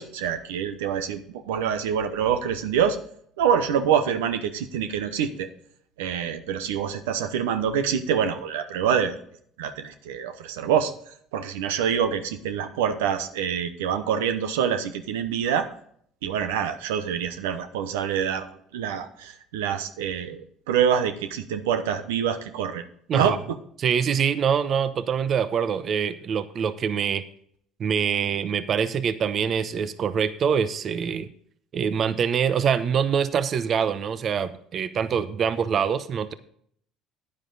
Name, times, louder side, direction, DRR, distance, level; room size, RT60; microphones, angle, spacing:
voice 1, 0.0-3.0 3.4-5.5 6.0-9.2 9.6-10.9 11.3-15.7 16.2-18.5 18.7-22.8 23.1-23.4, right 8 dB, 90° right, 9 dB, 0.8 m, -26 dB
voice 2, 23.8-27.2 27.8-31.3 31.7-36.3, right 7 dB, 50° right, 13 dB, 0.8 m, -24 dB
9.9 x 9.6 x 3.9 m, 0.64 s
supercardioid pair, 75°, 0 cm